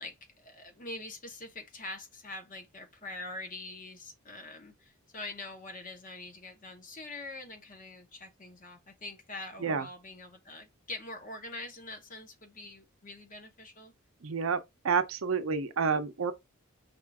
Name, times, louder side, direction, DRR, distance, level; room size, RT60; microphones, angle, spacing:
voice 1, 0.0-13.9, left 2 dB, 40° left, 1.0 m, -44 dB
voice 2, 14.2-14.6 14.8-16.3, right 5 dB, 70° right, 0.6 m, -29 dB
5.4 x 2.5 x 3.5 m
head